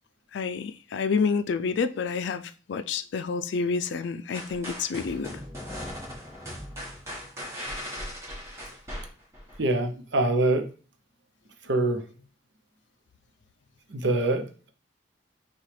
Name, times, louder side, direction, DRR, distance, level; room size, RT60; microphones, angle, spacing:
voice 1, 0.3-5.3, left 5 dB, 70° left, 0.4 m, -28 dB
sound 1, 4.3-9.6, equal, 15° right, 1.3 m, -38 dB
voice 2, 9.6-10.7 11.6-12.0 13.9-14.7, right 2 dB, 75° right, 0.7 m, -25 dB
6.5 x 2.3 x 3.3 m
head